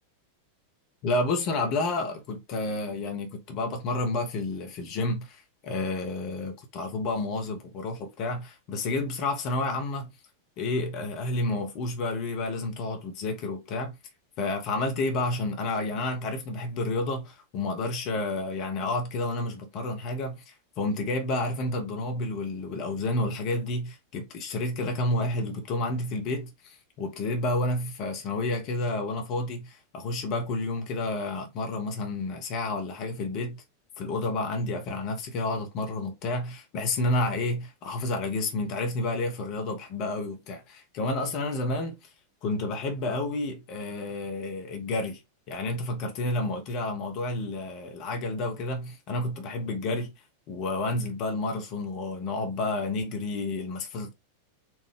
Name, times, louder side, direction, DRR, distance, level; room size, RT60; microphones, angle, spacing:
voice 1, 1.0-10.1 10.6-14.0 14.4-33.6 34.0-42.0 42.4-45.2 45.5-50.1 50.5-54.1, left 2 dB, 40° left, 1.2 m, -30 dB
4.5 x 2.7 x 3.4 m
figure-of-eight pair, 90°, 0 cm